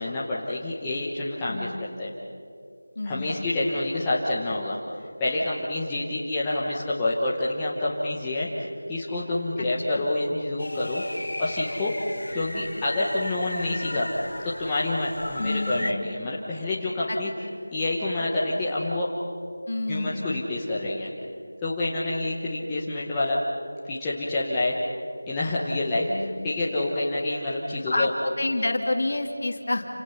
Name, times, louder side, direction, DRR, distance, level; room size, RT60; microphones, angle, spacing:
voice 1, 0.0-1.7 2.0-2.1 3.0-11.0 11.4-11.9 12.3-14.1 14.6-17.3 17.7-19.1 19.9-21.1 21.6-23.4 23.9-24.7 25.3-28.1, left 2 dB, 5° left, -8 dB, 0.9 m, -28 dB
voice 2, 1.5-1.8 3.0-3.5 9.9-10.1 15.4-16.1 17.1-17.2 19.7-20.5 26.1-26.5 27.9-29.9, left 2 dB, 35° left, 4 dB, 2.3 m, -29 dB
sound 1, 10.6-15.9, left 1 dB, 85° left, 1.7 m, -35 dB
29.5 x 27.5 x 5.7 m, 2.4 s
figure-of-eight pair, 180°, 0 cm